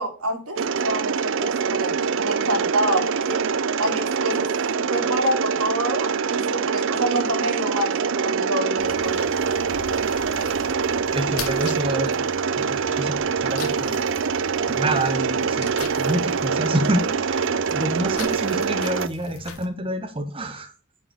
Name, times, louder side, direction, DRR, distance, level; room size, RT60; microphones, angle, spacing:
voice 1, 0.0-3.4 3.8-9.3 18.2-18.3, right 1 dB, 85° right, 2 dB, 2.9 m, -27 dB
Mechanisms, 0.6-19.1, right 6 dB, 55° right, 0.5 m, -24 dB
sound 1, 8.8-19.7, left 4 dB, 85° left, 1.8 m, -40 dB
voice 2, 11.1-14.0 14.7-20.7, right 1 dB, 25° right, 7 dB, 0.9 m, -28 dB
9.1 x 4.6 x 6.6 m, 0.35 s
head